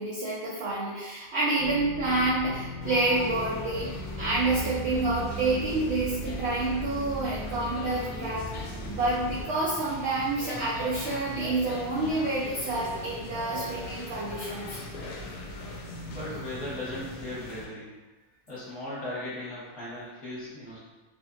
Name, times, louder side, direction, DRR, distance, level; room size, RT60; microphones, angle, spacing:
voice 1, 0.0-14.8, right 2 dB, 80° right, -7 dB, 0.6 m, -28 dB
sound 1, 1.6-9.4, right 1 dB, 35° right, 0.9 m, -38 dB
sound 2, 2.8-17.7, left 2 dB, 70° left, 0.8 m, -40 dB
voice 2, 16.0-17.9 18.5-20.8, left 1 dB, 25° left, -11 dB, 0.9 m, -37 dB
2.6 x 2.5 x 2.4 m, 1.1 s
omnidirectional pair, 1.7 m